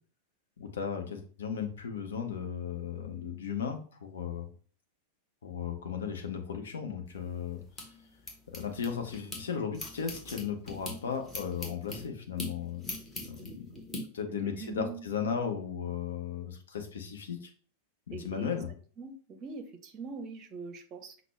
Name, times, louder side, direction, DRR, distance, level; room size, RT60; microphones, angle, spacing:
voice 1, 0.6-4.5 5.4-7.6 8.5-12.8 13.1-13.7 14.1-17.5 18.1-18.7, left 7 dB, 65° left, 5 dB, 0.8 m, -36 dB
sound 1, 7.1-9.4 9.7-14.0, left 2 dB, 20° left, 1.2 m, -42 dB
voice 2, 13.4-13.8 14.2-15.1 18.1-18.6 19.0-21.2, right 4 dB, 35° right, 8 dB, 0.6 m, -43 dB
5.9 x 2.1 x 3.2 m, 0.43 s
figure-of-eight pair, 90°, 0 cm